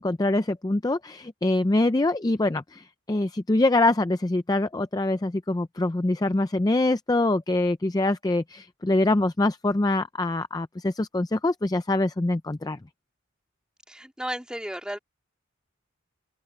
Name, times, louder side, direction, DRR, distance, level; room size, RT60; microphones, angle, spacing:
voice 1, 0.0-12.8, left 2 dB, 20° left, 0.4 m, -24 dB
voice 2, 13.9-15.0, equal, 5° right, 2.8 m, -34 dB
open air
head